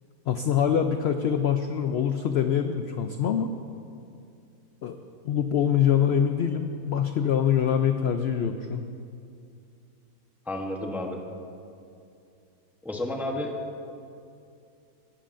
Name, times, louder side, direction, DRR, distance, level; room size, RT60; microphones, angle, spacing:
voice 1, 0.3-3.5 4.8-5.0 5.2-8.8, left 8 dB, 75° left, 7 dB, 0.5 m, -24 dB
voice 2, 10.5-11.2 12.8-13.6, left 1 dB, ahead, 1 dB, 0.6 m, -31 dB
17.5 x 13.0 x 2.5 m, 2.5 s
omnidirectional pair, 1.6 m